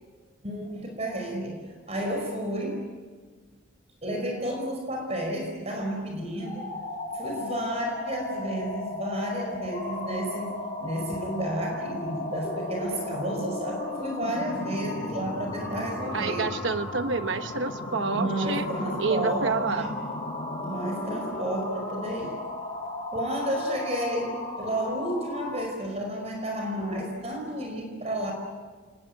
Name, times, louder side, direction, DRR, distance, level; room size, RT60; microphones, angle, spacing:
voice 1, 0.4-2.8 4.0-6.7 7.1-16.5 18.1-19.9 20.5-22.4 23.1-28.3, right 1 dB, 35° right, 2 dB, 5.0 m, -31 dB
sound 1, 6.3-25.7, left 2 dB, 45° left, 7.9 m, -35 dB
voice 2, 16.1-18.7 19.0-19.9, right 4 dB, 75° right, 9 dB, 1.0 m, -28 dB
28.0 x 20.5 x 9.3 m, 1.5 s
head